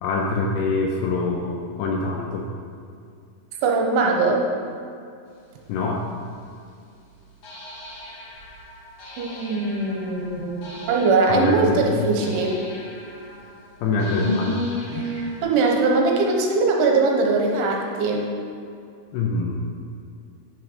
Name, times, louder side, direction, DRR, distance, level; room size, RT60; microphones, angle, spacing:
voice 1, 0.0-2.5 5.7-6.0 11.3-12.1 13.8-15.1 19.1-19.7, left 3 dB, 80° left, 0 dB, 2.6 m, -25 dB
voice 2, 3.6-4.5 9.2-12.6 15.0-18.3, right 3 dB, 80° right, 0 dB, 3.2 m, -21 dB
sound 1, 5.8-5.9 7.4-15.4, left 1 dB, 55° left, 2.0 m, -35 dB
10.5 x 6.5 x 5.2 m, 2.4 s
omnidirectional pair, 5.7 m